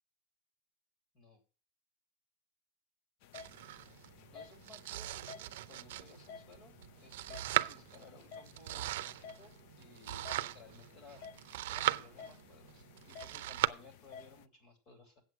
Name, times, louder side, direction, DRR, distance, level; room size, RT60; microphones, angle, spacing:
sound 1, 3.2-14.5, left 6 dB, 50° left, 0.5 m, -54 dB
Domestic sounds home sounds, 3.3-13.7, right 15 dB, 90° right, 0.5 m, -39 dB
voice 1, 4.3-15.2, left 3 dB, 30° left, 5 dB, 3.1 m, -59 dB
7.9 x 7.9 x 7.3 m, 0.36 s
supercardioid pair, 175°, 0 cm